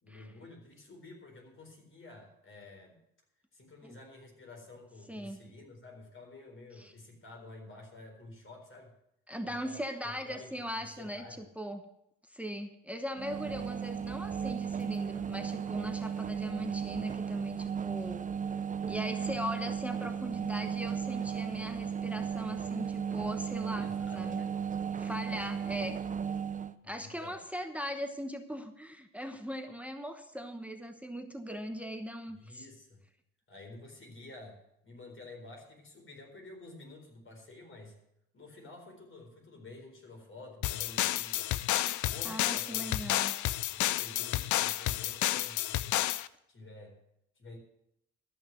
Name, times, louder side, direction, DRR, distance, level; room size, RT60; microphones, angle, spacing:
voice 1, 0.0-3.0 3.5-8.9 9.4-11.5 13.5-13.6 23.8-24.5 26.8-27.4 32.3-33.0 33.5-38.0 38.3-43.2 43.7-46.0 46.5-47.0 47.4-47.6, left 2 dB, 40° left, 2 dB, 4.2 m, -50 dB
voice 2, 9.3-11.8 12.3-18.2 18.9-23.9 24.1-24.4 24.9-26.0 26.9-32.7 42.2-43.3, equal, 5° right, 7 dB, 1.0 m, -39 dB
sound 1, 13.2-26.7, right 7 dB, 25° right, 0.7 m, -35 dB
sound 2, 40.6-46.3, left 14 dB, 75° left, 0.5 m, -31 dB
13.0 x 6.2 x 9.1 m, 0.79 s
cardioid pair, 90°, 30 cm